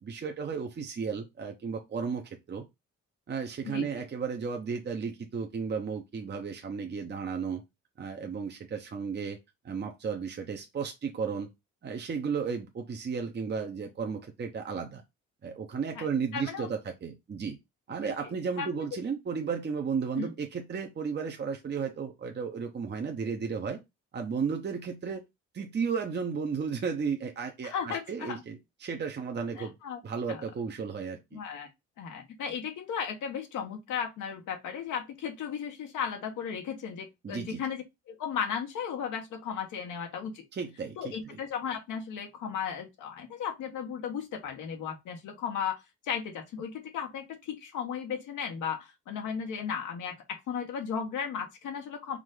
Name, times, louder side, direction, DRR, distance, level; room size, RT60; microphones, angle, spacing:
voice 1, 0.0-2.7 3.3-7.6 8.0-9.4 9.6-11.5 11.8-15.0 15.4-17.6 17.9-23.8 24.1-25.2 25.5-29.8 30.0-31.4 37.2-37.6 40.5-41.4, right 6 dB, 35° right, 0.8 m, -34 dB
voice 2, 16.3-16.7 18.0-18.1 18.6-18.8 20.2-20.3 27.6-28.4 29.6-30.0 30.3-30.4 31.3-31.7 32.0-40.4 41.0-52.2, left 7 dB, 85° left, 1.3 m, -35 dB
4.9 x 2.6 x 3.9 m
cardioid pair, 90°, 30 cm